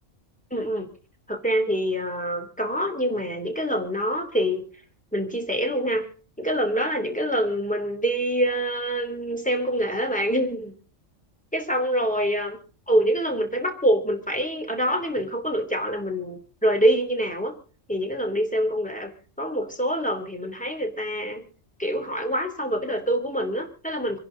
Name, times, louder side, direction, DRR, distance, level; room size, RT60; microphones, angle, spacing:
voice 1, 0.5-0.9 1.3-4.6 5.1-6.1 6.4-10.8 11.5-12.6 12.9-17.5 17.9-19.1 19.4-21.4 21.8-24.2, equal, 5° left, 4 dB, 3.1 m, -25 dB
27.5 x 11.0 x 3.9 m, 0.38 s
omnidirectional pair, 1.3 m